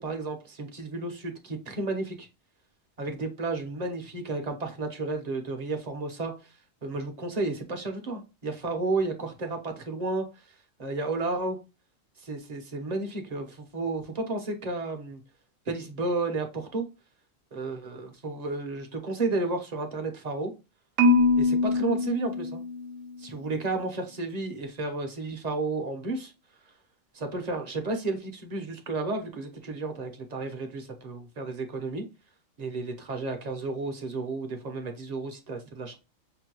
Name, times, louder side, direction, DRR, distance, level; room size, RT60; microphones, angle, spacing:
voice 1, 0.0-2.3 3.0-6.3 6.8-10.3 10.8-11.6 12.2-15.2 15.7-16.8 17.5-20.5 21.4-22.6 23.2-26.3 27.1-32.0 32.6-36.0, right 3 dB, 35° right, 0.8 m, -32 dB
Marimba xylophone, 21.0-23.2, left 2 dB, 80° right, 1.0 m, -23 dB
5.9 x 2.2 x 2.9 m
omnidirectional pair, 1.4 m